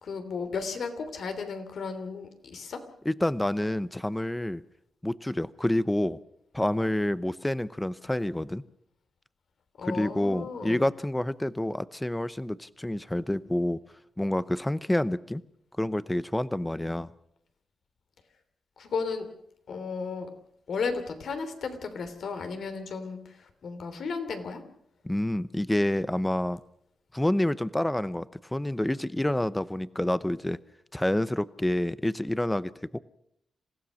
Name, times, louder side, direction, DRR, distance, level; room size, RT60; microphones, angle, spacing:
voice 1, 0.0-2.8 9.8-10.8 18.8-19.3 19.7-20.3 20.7-24.6, left 5 dB, 65° left, 8 dB, 3.2 m, -34 dB
voice 2, 3.0-4.6 5.0-6.2 6.5-8.6 9.8-13.8 14.2-15.4 15.8-17.1 25.0-26.6 27.1-30.6 30.9-33.0, left 1 dB, 10° left, 16 dB, 0.7 m, -28 dB
28.0 x 16.0 x 6.4 m, 0.73 s
cardioid pair, 100°, 0 cm